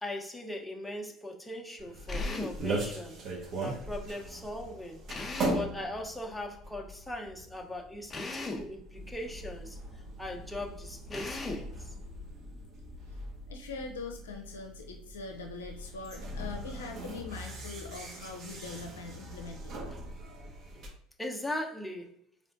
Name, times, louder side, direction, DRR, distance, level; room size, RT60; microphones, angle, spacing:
voice 1, 0.0-3.2 3.6-5.0 5.5-11.9 21.2-22.1, left 1 dB, 5° left, 0.9 m, -39 dB
sound 1, 1.8-20.9, right 1 dB, 55° right, 1.4 m, -40 dB
Drill, 2.1-2.6 5.1-5.7 8.1-8.7 11.1-11.7, left 2 dB, 25° left, 0.8 m, -37 dB
voice 2, 13.5-19.7, left 4 dB, 85° left, 0.5 m, -42 dB
4.3 x 3.3 x 2.6 m
hypercardioid pair, 70°, 0 cm